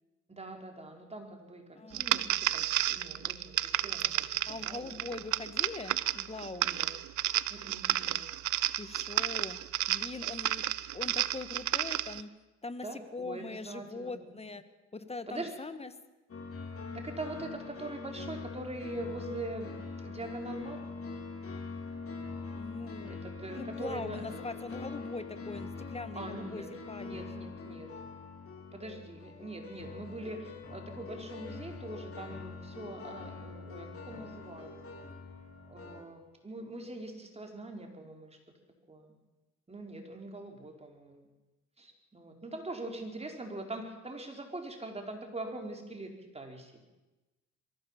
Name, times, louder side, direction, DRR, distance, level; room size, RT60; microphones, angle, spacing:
voice 1, 0.3-5.0 6.5-6.9 7.5-8.3 12.8-14.3 15.3-15.5 16.9-20.8 23.0-24.3 26.2-26.7 27.0-27.9 28.7-34.9 35.7-38.4 38.9-39.1 39.7-41.3 41.8-46.7, right 2 dB, 20° right, 3 dB, 4.3 m, -43 dB
voice 2, 1.7-2.1 4.5-6.7 8.7-9.6 9.9-10.6 10.9-12.3 12.6-14.6 14.9-15.9 22.5-27.3, left 3 dB, 20° left, 11 dB, 1.6 m, -42 dB
sound 1, 1.9-12.2, right 14 dB, 75° right, 0.8 m, -32 dB
sound 2, 16.3-36.0, left 4 dB, 50° left, 4.3 m, -43 dB
23.0 x 15.5 x 7.4 m, 1.1 s
cardioid pair, 90°, 30 cm